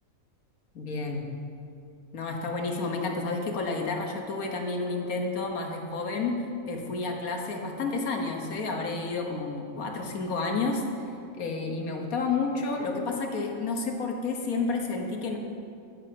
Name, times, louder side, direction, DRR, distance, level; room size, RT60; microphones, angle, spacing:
voice 1, 0.7-1.3 2.1-6.4 6.6-15.4, left 3 dB, 80° left, 2 dB, 1.6 m, -30 dB
13.5 x 5.4 x 7.7 m, 2.6 s
omnidirectional pair, 1.5 m